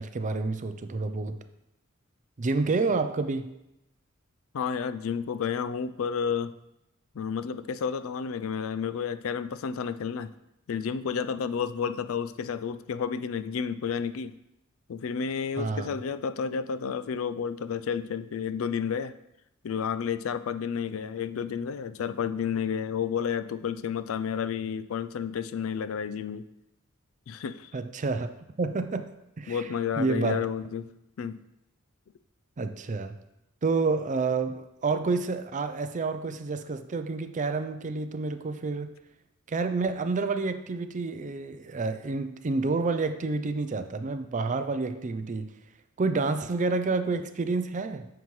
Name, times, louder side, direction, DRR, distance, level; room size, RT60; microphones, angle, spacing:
voice 1, 0.0-1.4 2.4-3.5 15.6-15.9 27.7-28.3 28.6-29.1 29.4-29.6 30.0-30.5 32.6-33.2 33.6-38.9 39.5-45.5 46.0-48.1, right 3 dB, 35° right, 9 dB, 0.5 m, -29 dB
voice 2, 4.5-6.5 7.2-10.3 10.7-14.3 14.9-19.1 19.6-26.5 27.3-27.7 29.5-30.9 31.2-31.4, left 7 dB, 75° left, 13 dB, 0.4 m, -31 dB
9.0 x 5.9 x 3.2 m, 0.87 s
head